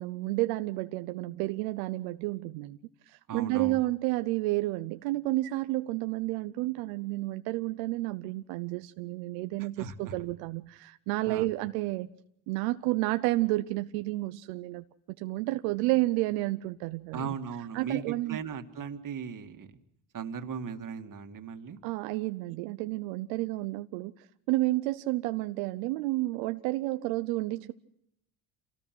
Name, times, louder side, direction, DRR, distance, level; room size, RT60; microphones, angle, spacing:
voice 1, 0.0-2.8 3.1-12.1 12.5-14.8 15.2-17.3 17.7-18.4 21.8-27.7, right 19 dB, 85° right, 10 dB, 0.8 m, -31 dB
voice 2, 3.3-3.8 9.6-10.1 11.3-11.5 17.1-19.8 20.1-21.8, right 7 dB, 45° right, 7 dB, 2.1 m, -37 dB
27.0 x 18.5 x 6.1 m, 0.75 s
supercardioid pair, 85°, 45 cm